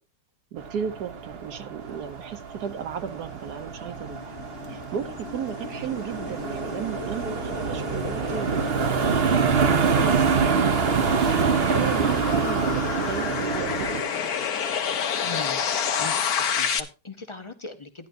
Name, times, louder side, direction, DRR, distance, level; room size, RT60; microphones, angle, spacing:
voice 1, 0.5-4.3 4.7-14.4, right 8 dB, 70° right, 8 dB, 1.4 m, -35 dB
sound 1, 0.6-14.0, right 6 dB, 50° right, 0.8 m, -26 dB
sound 2, 3.6-16.8, left 7 dB, 65° left, 1.4 m, -30 dB
voice 2, 15.2-15.6 16.0-18.1, left 3 dB, 50° left, 8 dB, 0.3 m, -39 dB
12.5 x 10.5 x 2.6 m, 0.28 s
omnidirectional pair, 1.8 m